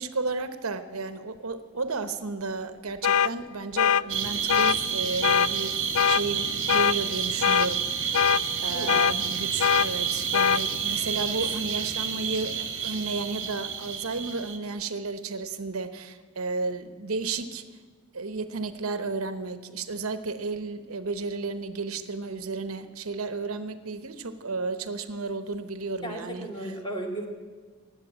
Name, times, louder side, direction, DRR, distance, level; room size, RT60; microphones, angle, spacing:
voice 1, 0.0-8.3 8.6-17.6 18.1-26.7, right 3 dB, 85° right, 11 dB, 1.0 m, -33 dB
sound 1, 3.0-3.3 3.8-4.0 4.5-4.8 5.2-5.5 6.0-6.2 6.7-7.0 7.4-7.7 8.1-8.4 8.9-9.1 9.6-9.9 10.3-10.6, left 8 dB, 75° left, 0.3 m, -21 dB
sound 2, 4.1-14.6, right 7 dB, 60° right, 1.5 m, -30 dB
voice 2, 8.7-9.1 26.0-27.3, right 1 dB, 20° left, 2 dB, 2.2 m, -35 dB
19.0 x 8.0 x 8.6 m, 1.5 s
head